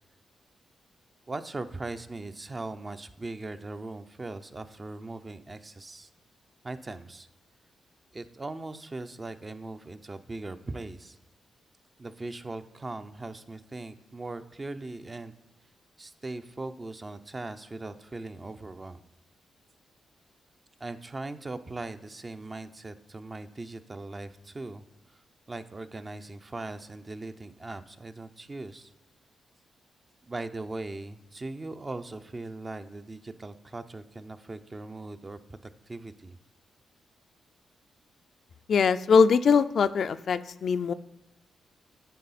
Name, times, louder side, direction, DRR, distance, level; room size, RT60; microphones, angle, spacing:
voice 1, 1.3-6.1 6.6-7.3 8.1-11.2 12.0-15.3 16.0-19.0 20.8-24.8 25.1-25.2 25.5-28.9 30.2-35.6 35.9-36.3, right 2 dB, 35° right, 9 dB, 0.5 m, -39 dB
voice 2, 38.7-40.9, left 5 dB, 65° left, 12 dB, 0.3 m, -22 dB
9.2 x 4.8 x 4.1 m, 0.99 s
cardioid pair, 60°, 0 cm